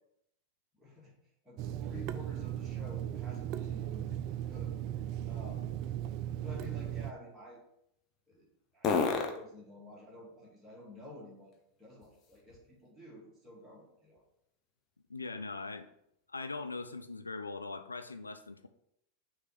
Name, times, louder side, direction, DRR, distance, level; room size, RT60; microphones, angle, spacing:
voice 1, 0.8-1.1 1.4-5.8 6.4-7.6 8.3-8.5 8.7-14.2, left 1 dB, 5° right, -6 dB, 2.2 m, -51 dB
Water tap faucet / Sink (filling or washing), 1.6-7.1, right 11 dB, 40° right, 0.4 m, -37 dB
sound 1, 3.9-12.9 13.4-17.2, left 5 dB, 30° left, 0.9 m, -42 dB
voice 2, 15.1-15.9 16.3-18.7, left 3 dB, 80° left, 8 dB, 0.5 m, -41 dB
6.4 x 3.2 x 5.8 m, 0.76 s
figure-of-eight pair, 90°, 0 cm